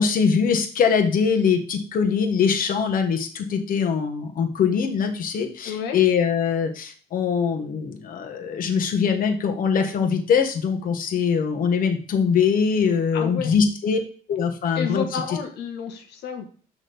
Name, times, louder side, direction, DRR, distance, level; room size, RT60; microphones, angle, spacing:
voice 1, 0.0-14.0 14.3-15.4, left 6 dB, 55° left, 4 dB, 1.4 m, -22 dB
voice 2, 5.6-6.1 13.1-13.5 14.7-16.5, left 7 dB, 75° left, 5 dB, 1.5 m, -30 dB
6.1 x 6.0 x 3.5 m, 0.43 s
cardioid pair, 110°, 17 cm